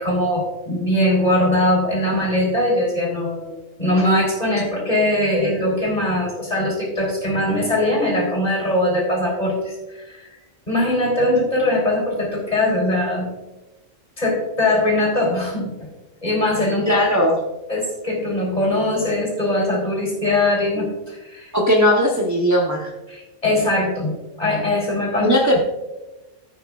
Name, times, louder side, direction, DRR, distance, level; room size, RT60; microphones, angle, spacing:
voice 1, 0.0-10.3 10.7-13.3 14.2-15.9 16.2-17.0 17.7-21.5 23.1-25.3, left 1 dB, 30° left, -1 dB, 4.0 m, -21 dB
voice 2, 16.9-17.4 21.5-22.9 25.1-25.6, equal, 15° right, -1 dB, 0.9 m, -18 dB
15.5 x 8.9 x 2.4 m, 1.1 s
omnidirectional pair, 1.3 m